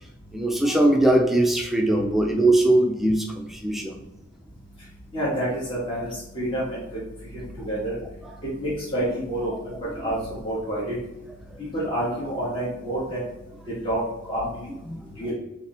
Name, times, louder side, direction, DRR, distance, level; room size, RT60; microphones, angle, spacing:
voice 1, 0.3-4.0 14.9-15.0, right 1 dB, ahead, 1 dB, 0.5 m, -21 dB
voice 2, 5.1-7.0 7.3-8.0 8.6-11.0 11.6-13.3 13.7-14.0 14.3-14.7 15.0-15.3, right 1 dB, 25° left, -10 dB, 1.6 m, -28 dB
5.3 x 2.9 x 3.4 m, 0.93 s
head